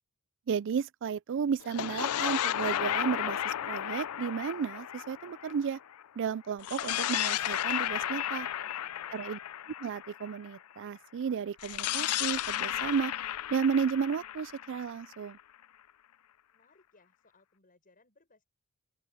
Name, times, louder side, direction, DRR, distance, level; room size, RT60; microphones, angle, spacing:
voice 1, 0.5-5.8 6.2-8.5 9.1-9.4 9.8-13.1 13.5-15.4, right 6 dB, 55° right, 0.4 m, -33 dB
sound 1, 1.6-6.0 6.6-10.5 11.6-15.4, left 11 dB, 75° left, 0.4 m, -33 dB
voice 2, 8.6-9.3 16.5-18.4, left 3 dB, 40° left, 7.4 m, -64 dB
open air
head